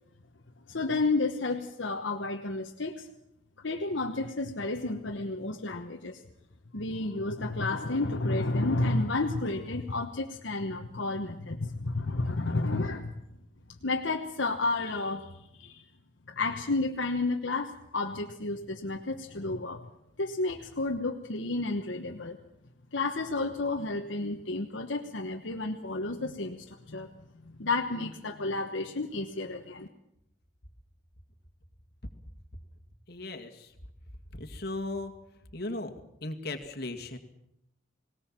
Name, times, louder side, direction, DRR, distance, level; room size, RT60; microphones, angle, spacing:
voice 1, 0.7-3.1 3.6-6.2 6.7-13.1 13.8-15.8 16.3-19.9 20.2-22.4 22.9-27.1 27.4-29.9, left 2 dB, 70° left, 2 dB, 1.2 m, -31 dB
voice 2, 33.1-33.7 34.3-35.1 35.5-35.9 36.2-37.2, left 2 dB, 55° left, 4 dB, 2.0 m, -37 dB
19.0 x 19.0 x 7.5 m, 0.80 s
head